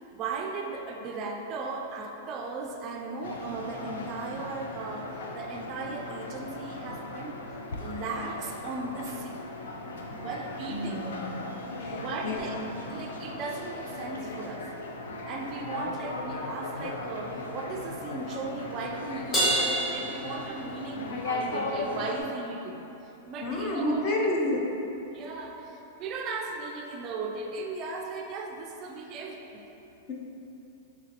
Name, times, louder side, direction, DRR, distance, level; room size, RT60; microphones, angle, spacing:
voice 1, 0.1-7.5 7.8-9.4 10.2-11.0 11.9-12.5 12.9-14.7 15.3-19.6 19.9-22.8 23.3-24.1 25.1-29.6, right 3 dB, 35° right, 2 dB, 0.3 m, -37 dB
sound 1, 3.2-22.2, left 2 dB, 90° left, 0.4 m, -37 dB
voice 2, 10.7-11.3 11.8-12.4 23.4-24.6, left 1 dB, 40° left, -2 dB, 0.5 m, -29 dB
Crash cymbal, 19.3-21.1, right 1 dB, 25° left, 1.1 m, -28 dB
3.8 x 3.1 x 2.9 m, 3.0 s
hypercardioid pair, 145°, 0 cm